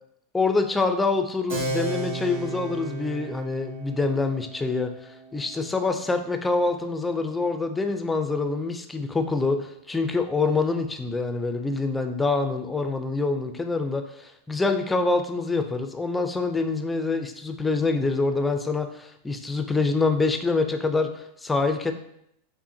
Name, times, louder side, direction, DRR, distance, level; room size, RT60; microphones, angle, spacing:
voice 1, 0.3-4.9 5.3-21.9, left 3 dB, 10° left, 6 dB, 0.4 m, -25 dB
Keyboard (musical), 1.5-7.6, right 2 dB, 70° right, 1.1 m, -35 dB
5.6 x 2.1 x 2.7 m, 0.75 s
hypercardioid pair, 95°, 0 cm